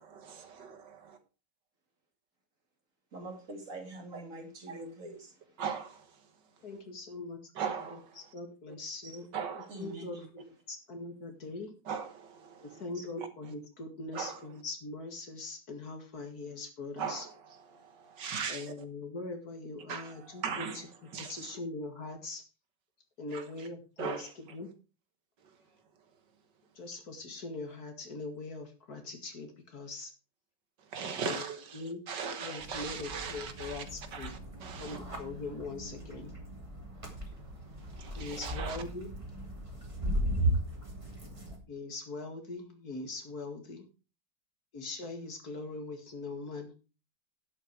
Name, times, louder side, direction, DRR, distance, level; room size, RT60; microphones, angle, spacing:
voice 1, 0.0-1.1 4.1-4.2 4.7-4.8 5.6-6.3 7.5-8.3 9.3-9.9 11.8-12.8 13.2-13.5 14.1-14.6 17.0-18.9 19.9-21.6 23.3-23.7 24.0-24.6 25.4-25.6 30.8-33.9 34.1-35.0 37.0-38.8, right 6 dB, 75° right, 2.1 m, -40 dB
voice 2, 3.1-5.6 6.6-6.8 9.0-9.3 9.7-10.6 12.9-13.1, right 2 dB, 45° right, 2.8 m, -46 dB
voice 3, 6.6-7.4 8.3-9.3 9.8-10.4 10.7-11.7 12.6-17.2 18.5-20.7 21.3-22.4 23.2-24.2 24.5-24.7 26.8-30.1 31.2-31.3 31.8-32.0 32.4-34.3 34.8-36.3 38.1-39.1 41.7-43.9 44.7-46.7, left 3 dB, 60° left, 2.5 m, -41 dB
sound 1, 32.6-41.6, right 1 dB, 15° right, 2.7 m, -37 dB
11.0 x 8.3 x 4.6 m
omnidirectional pair, 1.9 m